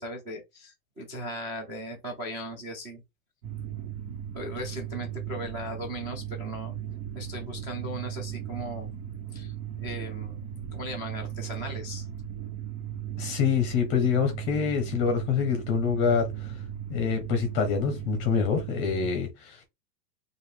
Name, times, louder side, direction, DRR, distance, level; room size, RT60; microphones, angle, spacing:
voice 1, 0.0-3.0 4.1-6.7 7.1-8.9 9.3-12.1, equal, 10° right, 0.5 m, -38 dB
sound 1, 3.4-19.1, right 10 dB, 65° right, 1.6 m, -37 dB
voice 2, 13.2-16.5 16.9-19.6, left 6 dB, 25° left, 0.7 m, -26 dB
4.6 x 2.6 x 3.4 m
supercardioid pair, 160°, 49 cm